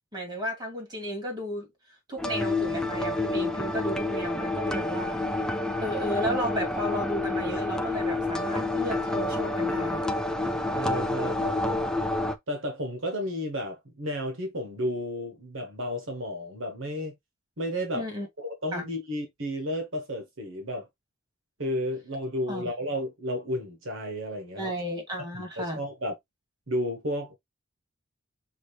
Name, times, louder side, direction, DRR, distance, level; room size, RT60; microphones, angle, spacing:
voice 1, 0.1-1.7 2.1-5.2 5.8-10.1 17.9-18.3 18.7-18.9 22.5-22.6 24.5-25.8, equal, 20° right, 2.5 m, -33 dB
sound 1, 2.2-12.4, left 2 dB, 5° left, 0.5 m, -28 dB
voice 2, 10.7-11.9 12.5-17.1 17.6-18.1 18.4-20.9 21.6-24.7 25.3-26.1 26.7-27.4, equal, 70° right, 1.4 m, -32 dB
6.3 x 2.6 x 3.2 m
head